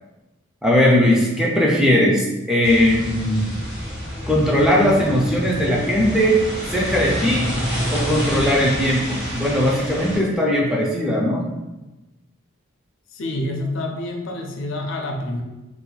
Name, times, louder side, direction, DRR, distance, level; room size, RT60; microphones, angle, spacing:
voice 1, 0.6-3.5 4.3-6.4 6.7-7.5 7.9-11.5, equal, 5° right, -4 dB, 0.3 m, -19 dB
sound 1, 2.6-10.2, equal, 75° right, 1.3 m, -28 dB
voice 2, 13.1-15.4, left 1 dB, 65° left, 2 dB, 0.4 m, -27 dB
2.5 x 2.2 x 3.8 m, 1.1 s
head